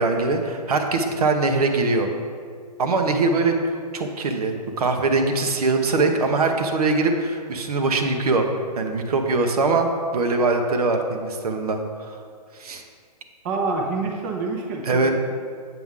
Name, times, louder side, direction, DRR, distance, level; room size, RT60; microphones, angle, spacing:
voice 1, 0.0-2.1 2.8-3.5 3.9-8.5 8.8-12.2 12.6-12.8 14.9-15.1, right 3 dB, 65° right, 4 dB, 1.0 m, -22 dB
voice 2, 13.4-15.1, right 3 dB, 25° right, 1 dB, 0.7 m, -27 dB
7.8 x 6.9 x 3.7 m, 2.1 s
hypercardioid pair, 155°, 21 cm